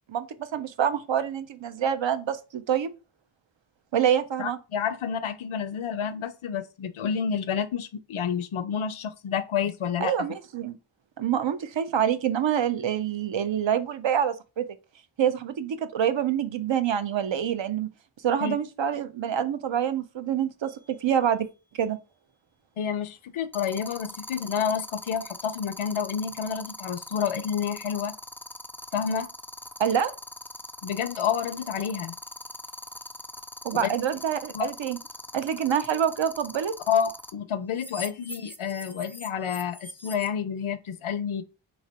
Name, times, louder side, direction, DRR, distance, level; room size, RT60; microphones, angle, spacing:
voice 1, 0.1-2.9 3.9-4.6 10.0-10.8 11.2-14.7 15.2-17.9 18.2-21.5 21.8-22.0 29.8-30.1 33.6-35.0 35.3-36.7, right 9 dB, 70° right, 0.6 m, -26 dB
voice 2, 4.4-10.1 18.4-18.6 22.8-28.1 28.9-29.3 30.8-32.1 33.7-33.9 34.5-34.7 36.9-41.4, left 7 dB, 80° left, 0.6 m, -29 dB
sound 1, 20.6-20.9 23.5-37.3 37.7-40.3, left 1 dB, 5° left, 0.3 m, -41 dB
3.1 x 2.9 x 4.3 m
wide cardioid pair, 55°, 48 cm